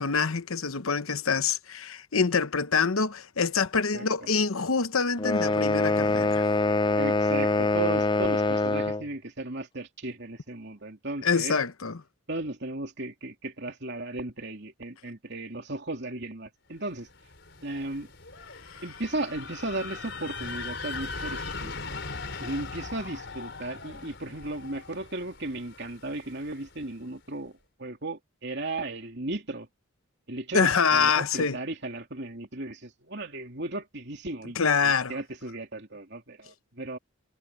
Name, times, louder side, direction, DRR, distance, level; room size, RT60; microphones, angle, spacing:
voice 1, 0.0-6.4 11.2-12.0 30.5-31.6 34.6-35.2, left 5 dB, 75° left, 1.0 m, -25 dB
voice 2, 3.9-4.3 7.0-11.6 12.3-17.1 17.6-18.1 18.8-21.7 22.4-29.7 30.3-37.0, right 2 dB, 50° right, 3.0 m, -35 dB
sound 1, 5.2-9.1, left 2 dB, 20° left, 0.5 m, -24 dB
sound 2, 17.1-26.9, left 4 dB, 55° left, 5.0 m, -40 dB
head